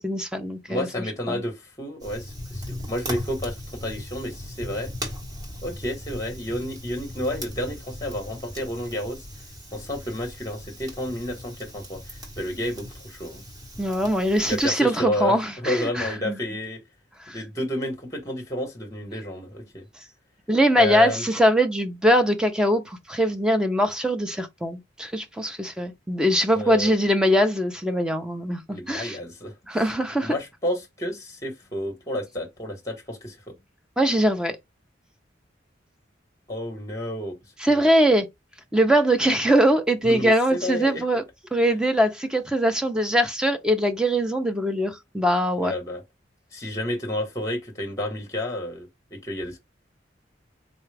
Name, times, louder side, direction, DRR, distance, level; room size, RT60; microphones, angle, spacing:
voice 1, 0.0-0.9 1.3-1.4 13.8-16.4 17.2-17.4 20.5-29.2 29.7-30.3 34.0-34.6 37.6-38.3 38.7-41.2 41.5-45.7, equal, 5° right, 0.5 m, -22 dB
voice 2, 0.7-4.9 5.6-9.2 9.7-13.4 14.4-16.8 17.3-19.8 20.8-21.2 26.5-26.9 28.7-29.5 30.2-33.5 36.5-37.4 37.7-37.9 40.0-41.0 45.6-46.0 46.5-49.6, left 1 dB, 20° left, 1.0 m, -31 dB
Fire, 2.0-14.7, equal, 20° right, 1.2 m, -38 dB
4.0 x 2.3 x 3.2 m
head